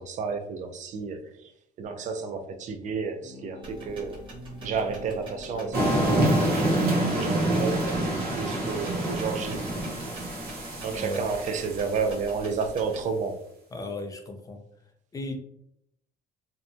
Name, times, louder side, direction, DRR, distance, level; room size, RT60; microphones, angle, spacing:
voice 1, 0.0-1.5 1.8-4.2 4.6-8.0 8.4-9.6 10.8-13.4, right 5 dB, 45° right, 7 dB, 0.4 m, -31 dB
sound 1, 3.2-9.7, left 3 dB, 45° left, 1.0 m, -44 dB
sound 2, 3.6-13.1, equal, 30° right, 1.0 m, -46 dB
sound 3, 5.7-12.4, right 1 dB, 65° right, 0.9 m, -27 dB
voice 2, 10.9-11.3 13.7-14.6 15.1-15.4, left 2 dB, 20° left, 4 dB, 0.5 m, -35 dB
2.7 x 2.1 x 2.5 m, 0.75 s
cardioid pair, 110°, 17 cm